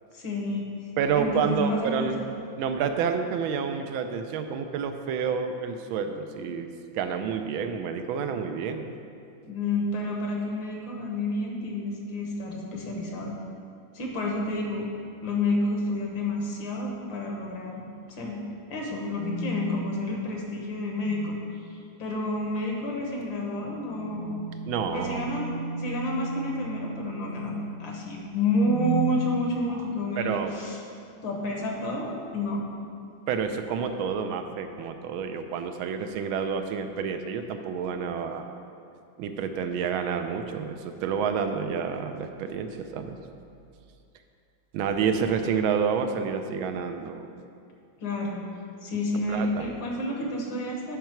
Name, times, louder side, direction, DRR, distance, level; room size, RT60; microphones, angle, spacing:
voice 1, 0.1-0.7 1.1-2.1 9.4-13.3 13.9-14.9 15.2-17.8 18.2-18.4 18.7-21.4 22.0-24.4 24.9-27.5 27.8-30.8 31.2-32.7 48.0-48.5 48.8-51.0, left 1 dB, 70° left, -1 dB, 1.9 m, -29 dB
voice 2, 1.0-2.2 2.6-6.7 6.9-8.9 24.7-25.3 30.2-30.5 33.3-38.5 39.2-43.2 44.7-47.3 49.3-49.7, right 6 dB, 80° right, 7 dB, 1.4 m, -29 dB
sound 1, 19.1-19.6 20.9-21.4 23.6-27.8 28.5-29.2, right 4 dB, 65° right, 1.6 m, -35 dB
9.3 x 5.7 x 4.4 m, 2.4 s
omnidirectional pair, 2.2 m